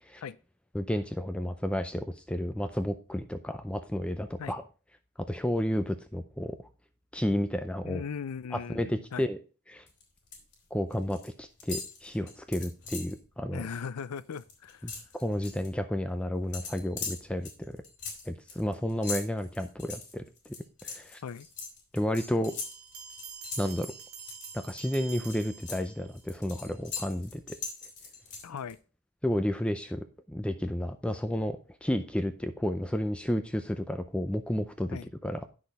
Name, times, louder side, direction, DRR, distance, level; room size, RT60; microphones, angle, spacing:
voice 1, 0.7-4.6 5.2-6.6 7.1-8.0 8.5-9.4 9.7-9.9 10.7-13.6 14.8-14.9 15.2-17.8 18.3-20.2 20.8-21.2 21.9-22.5 23.6-23.9 24.5-27.6 29.2-35.5, equal, 5° left, 0.5 m, -31 dB
voice 2, 7.8-9.3 13.5-14.9 21.2-21.5 28.4-28.8 34.9-35.1, left 6 dB, 90° left, 0.5 m, -38 dB
sound 1, 9.9-10.5 10.8-11.3 11.6-13.2 13.6-13.8 14.1-15.7 16.5-24.7 25.1-28.7, left 5 dB, 55° left, 3.2 m, -41 dB
Bell, 22.5-26.3, right 7 dB, 75° right, 1.5 m, -46 dB
9.8 x 6.3 x 4.1 m
head